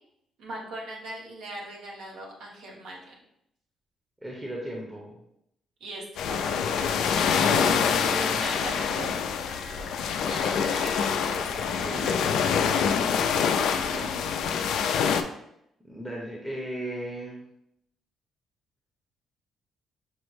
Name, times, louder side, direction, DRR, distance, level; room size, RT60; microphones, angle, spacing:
voice 1, 0.4-3.2 5.8-6.9 7.2-7.7 8.4-9.1 10.2-12.9 13.7-14.2, right 1 dB, 80° right, -2 dB, 1.1 m, -40 dB
voice 2, 4.2-5.2 7.6-8.4 8.9-9.0 11.8-12.4 13.7-14.1 15.8-17.4, equal, 15° right, -3 dB, 0.8 m, -37 dB
sound 1, 6.2-15.2, left 7 dB, 80° left, 0.3 m, -25 dB
Bowed string instrument, 7.4-12.5 13.9-14.0, right 1 dB, 60° right, 0.6 m, -43 dB
6.0 x 2.0 x 3.2 m, 0.77 s
cardioid pair, 90°, 0 cm